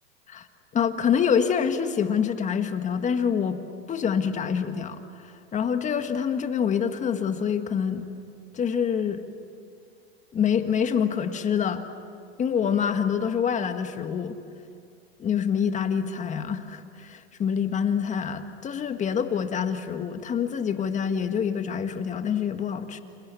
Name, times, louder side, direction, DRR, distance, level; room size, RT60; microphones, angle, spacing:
voice 1, 0.7-3.6 3.9-8.0 8.5-9.2 10.3-11.9 12.4-14.4 15.2-23.0, left 7 dB, 25° left, 8 dB, 1.8 m, -26 dB
29.5 x 28.0 x 7.2 m, 2.3 s
hypercardioid pair, 120°, 30 cm